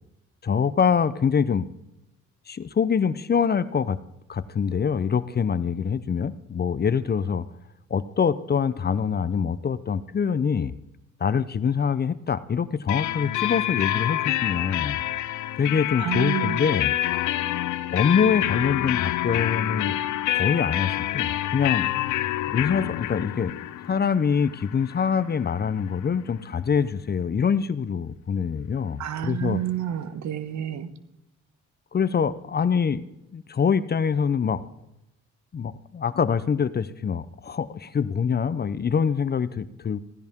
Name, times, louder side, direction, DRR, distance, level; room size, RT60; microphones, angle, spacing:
voice 1, 0.4-1.7 2.5-4.0 4.3-7.4 7.9-10.7 11.2-15.0 15.6-16.9 17.9-19.9 20.3-21.9 22.5-23.5 23.8-29.6 31.9-33.0 33.3-34.6 35.5-40.0, left 6 dB, 35° left, 15 dB, 0.7 m, -24 dB
sound 1, 12.9-26.5, left 14 dB, 85° left, 0.6 m, -27 dB
voice 2, 16.0-16.6 29.0-30.9, right 10 dB, 70° right, 12 dB, 1.2 m, -29 dB
16.0 x 15.0 x 3.7 m, 0.87 s
cardioid pair, 90°, 30 cm